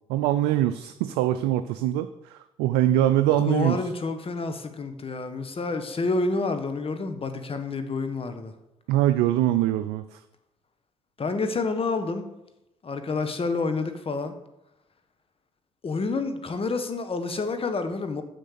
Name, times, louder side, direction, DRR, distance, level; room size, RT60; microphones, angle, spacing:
voice 1, 0.1-3.8 8.9-10.2, right 13 dB, 85° right, 10 dB, 0.4 m, -23 dB
voice 2, 3.3-8.5 11.2-12.3 12.8-14.3 15.8-18.2, left 3 dB, 40° left, 8 dB, 1.3 m, -29 dB
6.5 x 6.5 x 6.6 m, 0.89 s
hypercardioid pair, 50°, 15 cm